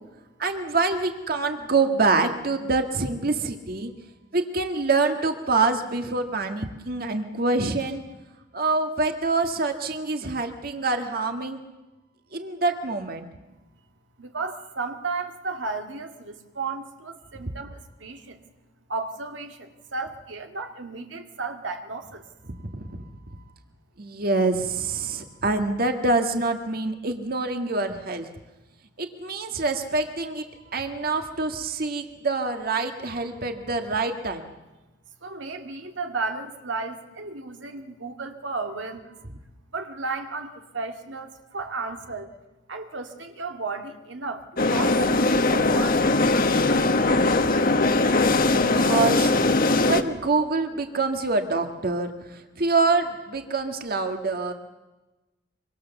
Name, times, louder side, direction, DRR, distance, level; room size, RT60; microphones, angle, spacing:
voice 1, 0.4-3.9 4.3-8.0 8.5-11.6 12.3-13.3 22.7-23.0 24.0-28.3 29.0-30.4 30.7-34.5 47.2-47.6 48.5-49.3 49.8-54.5, right 3 dB, 55° right, 6 dB, 1.8 m, -26 dB
voice 2, 14.2-18.5 18.9-22.3 35.2-39.1 39.7-42.3 42.7-46.9, right 3 dB, 85° right, 5 dB, 2.0 m, -34 dB
sound 1, 44.6-50.0, left 2 dB, 50° left, 1.3 m, -20 dB
25.0 x 25.0 x 7.1 m, 1.1 s
head